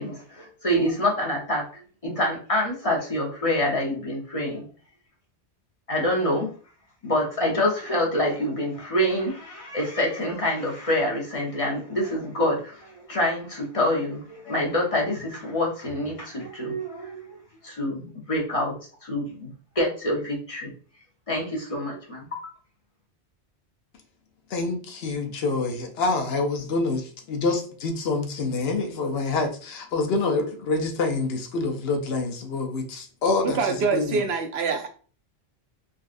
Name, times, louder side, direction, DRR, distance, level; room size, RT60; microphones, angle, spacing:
voice 1, 0.0-1.6 2.0-4.7 5.9-6.5 7.0-17.4 17.6-18.7 19.0-20.7 21.3-22.4, left 1 dB, 35° left, -2 dB, 0.9 m, -26 dB
voice 2, 24.5-33.6 33.9-34.3, left 3 dB, 70° left, 5 dB, 0.8 m, -26 dB
voice 3, 33.4-34.9, right 5 dB, 75° right, 4 dB, 0.8 m, -25 dB
3.8 x 2.4 x 2.5 m, 0.41 s
omnidirectional pair, 1.1 m